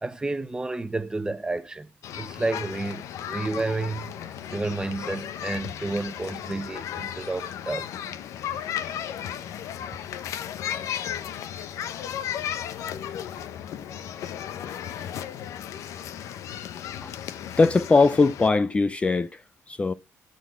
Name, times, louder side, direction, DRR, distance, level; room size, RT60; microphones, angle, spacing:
voice 1, 0.0-1.9 2.2-4.1 4.5-7.9 11.8-11.9, right 2 dB, 15° right, 0.9 m, -30 dB
sound 1, 2.0-18.5, left 10 dB, 75° left, 0.8 m, -35 dB
voice 2, 17.6-19.4 19.7-19.9, left 3 dB, 20° left, 0.5 m, -20 dB
12.5 x 4.2 x 8.1 m
cardioid pair, 100°, 5 cm